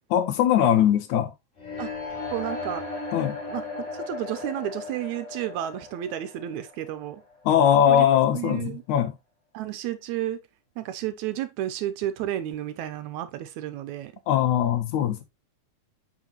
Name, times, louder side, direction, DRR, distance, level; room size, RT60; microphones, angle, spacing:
voice 1, 0.1-1.3 3.1-3.3 7.5-9.1 14.3-15.2, left 10 dB, 75° left, 2.4 m, -21 dB
sound 1, 1.6-7.5, left 3 dB, 45° left, 4.8 m, -36 dB
voice 2, 2.3-2.8 3.5-3.6 3.9-7.2 7.9-8.8 9.5-10.4 10.8-14.1, right 12 dB, 75° right, 1.8 m, -32 dB
8.2 x 5.1 x 2.9 m
omnidirectional pair, 3.6 m